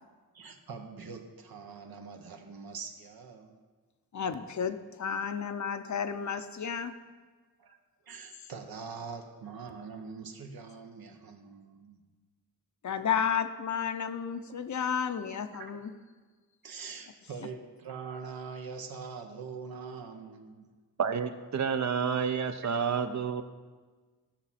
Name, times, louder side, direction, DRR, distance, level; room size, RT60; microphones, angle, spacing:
voice 1, 0.3-3.6 7.6-7.8 8.0-12.1 15.5-15.8 16.6-20.7, right 5 dB, 75° right, 4 dB, 1.1 m, -43 dB
voice 2, 4.1-6.9 12.8-15.9, left 7 dB, 50° left, 9 dB, 0.7 m, -32 dB
voice 3, 21.0-23.4, right 6 dB, 50° right, 9 dB, 0.7 m, -29 dB
14.5 x 6.0 x 4.2 m, 1.4 s
wide cardioid pair, 95°, 36 cm